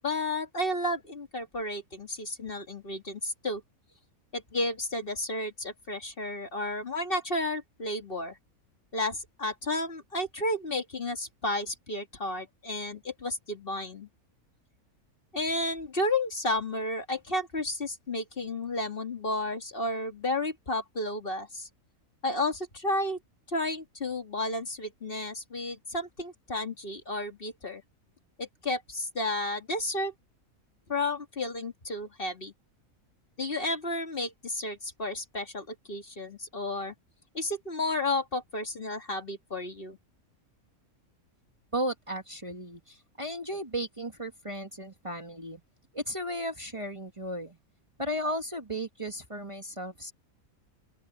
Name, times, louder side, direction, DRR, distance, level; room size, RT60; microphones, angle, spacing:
voice 1, 0.0-3.6 4.3-8.4 8.9-14.1 15.3-21.7 22.2-23.2 23.5-27.8 28.4-30.1 30.9-32.5 33.4-36.9 37.3-40.0, left 2 dB, 40° left, 2.1 m, -32 dB
voice 2, 41.7-45.6 45.9-47.6 48.0-50.1, equal, 20° right, 1.7 m, -35 dB
open air
omnidirectional pair, 1.5 m